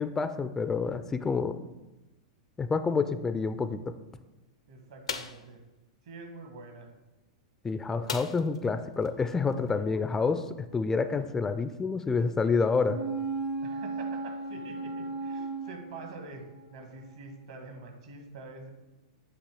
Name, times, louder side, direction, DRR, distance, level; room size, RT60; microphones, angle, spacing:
voice 1, 0.0-1.6 2.6-4.0 7.6-13.0, left 4 dB, 15° left, 11 dB, 0.3 m, -28 dB
voice 2, 4.7-5.6 6.0-6.9 13.6-16.4 16.7-18.7, right 3 dB, 65° right, 3 dB, 1.5 m, -46 dB
sound 1, 5.1-5.5 8.1-8.7 9.0-9.1 9.5-9.7, left 6 dB, 75° left, 0.5 m, -36 dB
sound 2, 12.8-16.6 17.0-17.1, right 3 dB, 50° right, 0.7 m, -35 dB
8.2 x 2.8 x 6.2 m, 1.0 s
figure-of-eight pair, 100°, 3 cm